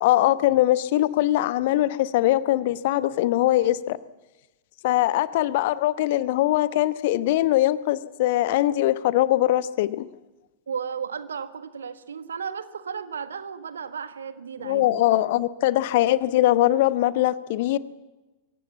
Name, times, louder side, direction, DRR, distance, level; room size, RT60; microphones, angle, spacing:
voice 1, 0.0-4.0 4.8-10.1 14.6-17.8, left 15 dB, 50° left, 15 dB, 0.9 m, -22 dB
voice 2, 10.7-15.0, right 6 dB, 70° right, 11 dB, 1.5 m, -34 dB
24.0 x 17.0 x 8.4 m, 1.1 s
figure-of-eight pair, 90°, 0 cm